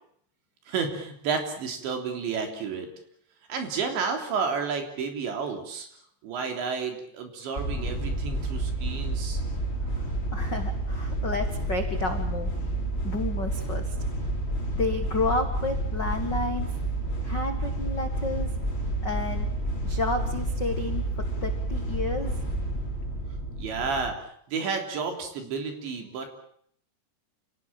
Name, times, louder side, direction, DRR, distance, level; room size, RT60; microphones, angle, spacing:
voice 1, 0.7-2.9 3.5-5.9 6.2-9.4 23.6-26.4, right 5 dB, 75° right, 4 dB, 5.7 m, -31 dB
sound 1, 7.6-24.1, right 1 dB, 15° left, 3.1 m, -30 dB
voice 2, 10.3-12.5 13.0-13.9 14.7-16.7 17.2-18.5 19.0-19.5 19.8-21.0 21.4-22.3, left 3 dB, 60° left, 5 dB, 1.1 m, -31 dB
28.5 x 17.5 x 8.9 m, 0.65 s
omnidirectional pair, 5.2 m